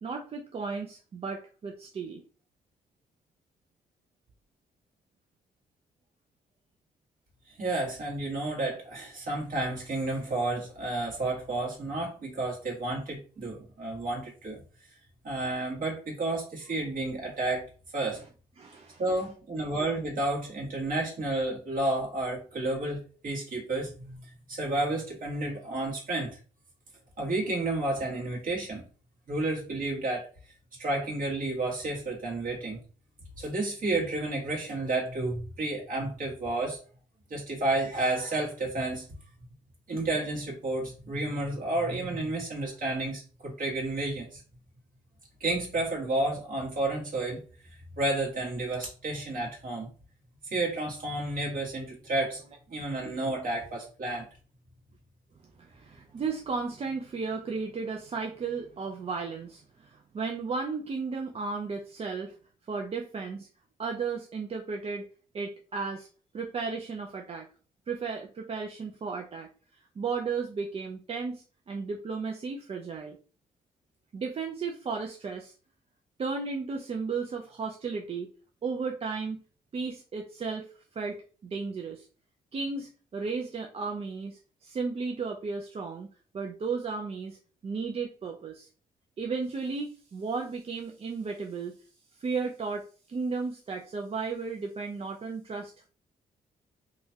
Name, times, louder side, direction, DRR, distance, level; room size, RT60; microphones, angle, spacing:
voice 1, 0.0-2.2 18.1-18.2 18.6-19.0 55.6-62.4 62.7-63.5 63.8-65.1 65.3-66.1 66.3-67.5 67.9-69.5 70.0-73.2 74.1-75.5 76.2-78.3 78.6-79.4 79.7-82.1 82.5-86.1 86.3-87.4 87.6-88.7 89.2-91.8 92.2-95.9, right 4 dB, 35° right, 2 dB, 0.4 m, -34 dB
voice 2, 7.5-14.6 15.2-17.7 17.9-18.2 19.0-24.2 24.5-26.4 27.2-28.8 29.3-30.3 30.8-32.8 33.4-36.8 37.3-39.0 39.9-44.4 45.4-47.4 48.0-49.9 50.5-52.4 52.7-54.2, right 2 dB, 60° right, -2 dB, 1.6 m, -31 dB
2.9 x 2.3 x 2.7 m, 0.38 s
cardioid pair, 80°, 16 cm